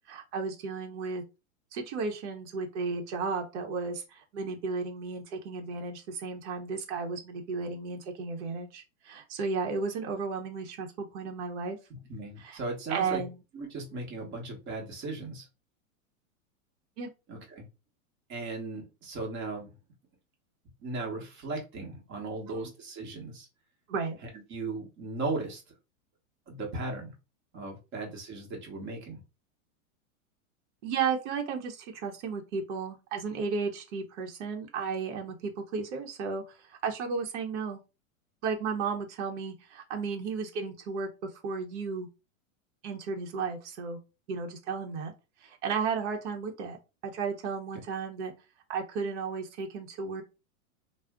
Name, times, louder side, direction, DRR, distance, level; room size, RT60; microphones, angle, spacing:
voice 1, 0.1-1.2 1.7-11.8 12.4-12.6 12.9-13.4 17.0-17.1 22.5-22.7 23.9-24.2 27.9-28.1 30.8-37.8 38.4-42.1 42.8-44.0 44.3-45.1 45.4-46.8 47.0-48.3 48.7-50.2, right 5 dB, 55° right, 3 dB, 0.9 m, -34 dB
voice 2, 12.1-13.2 13.5-15.5 17.3-17.7 18.3-19.7 20.8-23.5 24.5-25.6 26.5-27.1 27.5-29.2, right 3 dB, 25° right, 0 dB, 1.1 m, -37 dB
2.4 x 2.1 x 3.5 m, 0.28 s
supercardioid pair, 140°, 42 cm